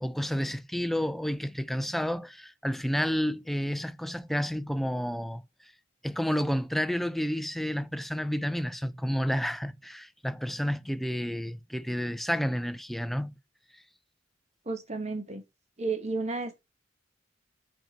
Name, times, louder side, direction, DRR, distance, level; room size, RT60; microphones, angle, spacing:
voice 1, 0.0-5.4 6.0-13.4, equal, ahead, 0.4 m, -30 dB
voice 2, 14.6-15.4 15.8-16.6, right 3 dB, 30° right, 1.2 m, -32 dB
5.3 x 4.6 x 4.5 m
head